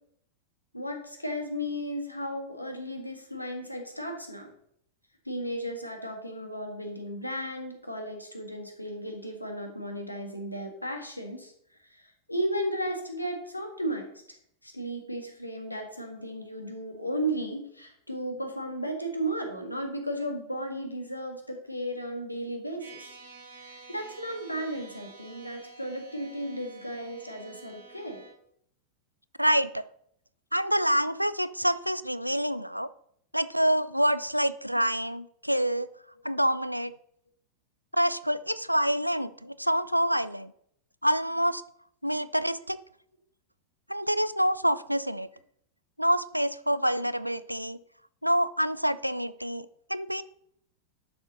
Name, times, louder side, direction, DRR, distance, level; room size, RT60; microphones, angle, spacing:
voice 1, 0.7-4.5 5.2-11.5 11.9-14.1 14.6-23.2 23.5-28.2, equal, 85° left, 3 dB, 1.7 m, -35 dB
sound 1, 22.8-28.3, right 4 dB, 70° right, 3.5 m, -50 dB
voice 2, 29.4-29.8 30.5-32.9 33.3-35.9 36.2-36.9 37.9-40.5 41.0-41.6 42.0-42.8 43.9-45.3 46.0-47.8 48.2-50.2, equal, 90° right, 15 dB, 0.4 m, -27 dB
11.0 x 6.7 x 4.0 m, 0.69 s
figure-of-eight pair, 90°, 0 cm